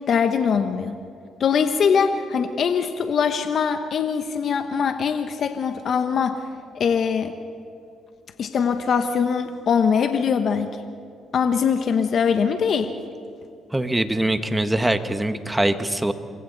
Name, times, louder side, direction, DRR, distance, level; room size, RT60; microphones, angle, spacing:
voice 1, 0.1-0.9 1.4-6.4 6.7-7.3 8.4-10.7 11.3-12.9, left 6 dB, 60° left, 7 dB, 1.1 m, -22 dB
voice 2, 13.7-16.1, right 1 dB, 10° right, 9 dB, 1.3 m, -23 dB
27.5 x 23.0 x 4.1 m, 2.5 s
cardioid pair, 90°, 0 cm